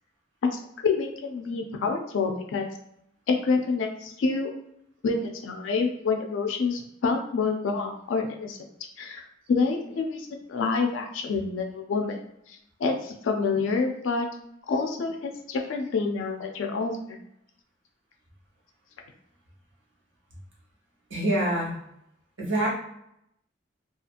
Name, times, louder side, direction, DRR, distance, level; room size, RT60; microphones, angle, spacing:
voice 1, 0.5-2.7 3.3-4.5 5.0-8.6 9.0-12.2 12.5-14.3 14.7-17.2, left 4 dB, 90° left, 3 dB, 0.4 m, -27 dB
voice 2, 21.1-21.8 22.4-22.7, right 1 dB, 80° right, -4 dB, 1.0 m, -25 dB
2.7 x 2.4 x 2.5 m, 0.77 s
head